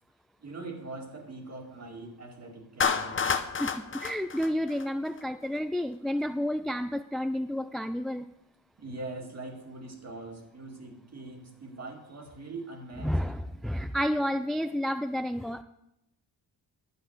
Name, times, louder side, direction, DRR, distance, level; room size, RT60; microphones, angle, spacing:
voice 1, 0.4-3.2 8.8-13.2, right 3 dB, 40° right, 3 dB, 2.3 m, -42 dB
Clapping, 2.8-5.2, left 6 dB, 30° left, 0.8 m, -29 dB
voice 2, 3.6-8.3 13.0-15.6, equal, ahead, 10 dB, 0.3 m, -30 dB
10.5 x 5.6 x 8.1 m, 0.83 s
cardioid pair, 115°, 39 cm